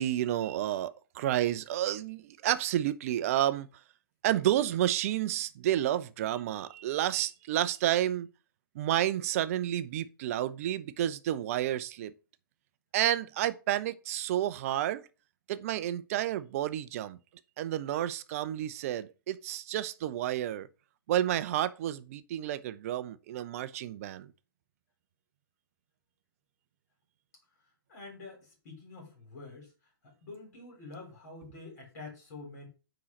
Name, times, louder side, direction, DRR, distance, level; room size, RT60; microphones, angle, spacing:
voice 1, 0.0-3.7 4.2-8.3 8.7-12.1 12.9-15.0 15.5-17.2 17.6-20.7 21.1-24.3, right 12 dB, 35° right, 0.5 m, -30 dB
voice 2, 27.9-29.7 30.0-32.7, left 3 dB, 45° left, 3.6 m, -47 dB
9.4 x 3.8 x 3.1 m
figure-of-eight pair, 115°, 13 cm